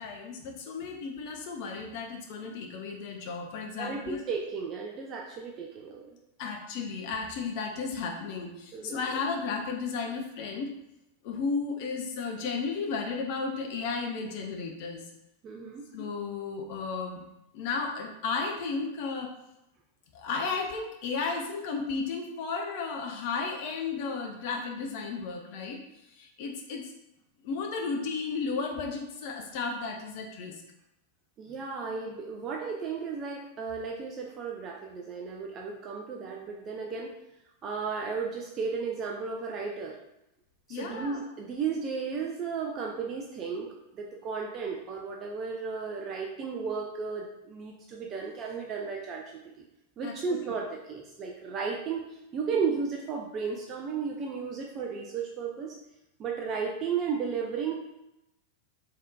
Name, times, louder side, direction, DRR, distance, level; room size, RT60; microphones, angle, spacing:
voice 1, 0.0-4.2 6.4-10.7 11.2-15.0 15.9-17.2 17.5-19.3 20.1-25.8 26.1-26.9 27.4-30.6 40.7-41.2 50.0-50.4, left 4 dB, 45° left, 2 dB, 0.5 m, -34 dB
voice 2, 3.8-6.1 8.7-9.0 15.4-15.8 31.4-37.1 37.6-40.0 40.7-49.6 50.0-52.0 52.3-55.8 56.2-57.7, right 5 dB, 30° right, 0 dB, 0.4 m, -34 dB
3.4 x 2.7 x 2.2 m, 0.87 s
figure-of-eight pair, 90°, 0 cm